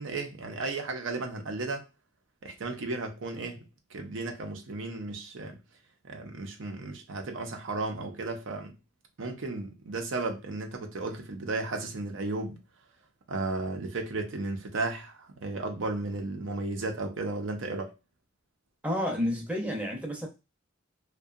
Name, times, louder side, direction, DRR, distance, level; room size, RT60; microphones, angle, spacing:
voice 1, 0.0-1.8 2.4-5.6 6.0-8.7 9.2-12.6 13.3-17.9, right 3 dB, 80° right, 0.6 m, -34 dB
voice 2, 18.8-20.3, left 1 dB, 5° right, 0.6 m, -30 dB
2.6 x 2.2 x 2.4 m
head